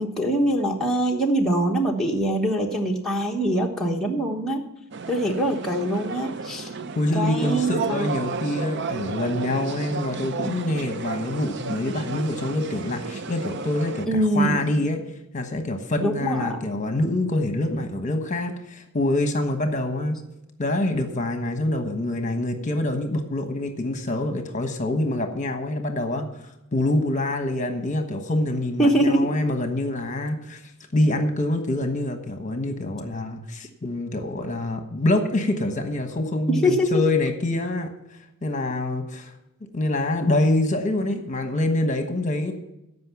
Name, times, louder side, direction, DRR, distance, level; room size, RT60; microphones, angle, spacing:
voice 1, 0.0-4.7 5.1-6.7 7.1-8.1 14.1-14.6 16.0-16.6 28.8-29.3 36.5-37.0, right 1 dB, ahead, -3 dB, 1.1 m, -23 dB
sound 1, 4.9-14.1, right 4 dB, 50° right, 0.5 m, -33 dB
voice 2, 7.0-15.0 15.3-20.2 20.6-26.2 26.7-30.6 30.9-37.9 38.4-39.3 39.7-42.5, left 1 dB, 35° left, 6 dB, 1.2 m, -25 dB
14.0 x 5.5 x 7.1 m, 0.88 s
head